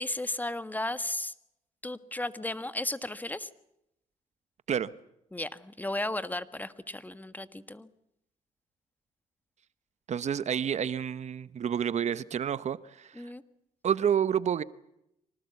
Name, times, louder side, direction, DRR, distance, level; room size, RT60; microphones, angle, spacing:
voice 1, 0.0-1.3 1.8-3.5 5.3-7.9 13.2-13.4, left 1 dB, 10° left, 12 dB, 1.6 m, -34 dB
voice 2, 10.1-13.3 13.8-14.6, right 8 dB, 55° right, 16 dB, 0.9 m, -29 dB
25.5 x 19.0 x 8.3 m, 0.81 s
cardioid pair, 75°, 14 cm